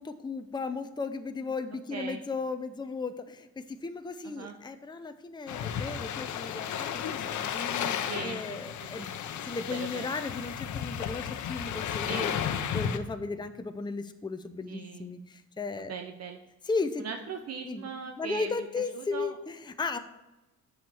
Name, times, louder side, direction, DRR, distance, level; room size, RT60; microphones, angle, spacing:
voice 1, 0.0-12.3 12.7-15.9 16.6-17.0 17.6-20.0, left 4 dB, 15° left, 8 dB, 0.7 m, -36 dB
voice 2, 1.9-2.2 4.2-4.5 8.1-8.6 9.0-9.1 9.7-10.1 12.1-12.3 14.7-15.1 15.9-16.4 17.0-18.5 18.9-19.3, right 6 dB, 55° right, 5 dB, 0.8 m, -39 dB
sound 1, 5.5-13.0, left 8 dB, 70° left, 0.9 m, -33 dB
7.3 x 6.5 x 6.8 m, 1.1 s
cardioid pair, 90°, 30 cm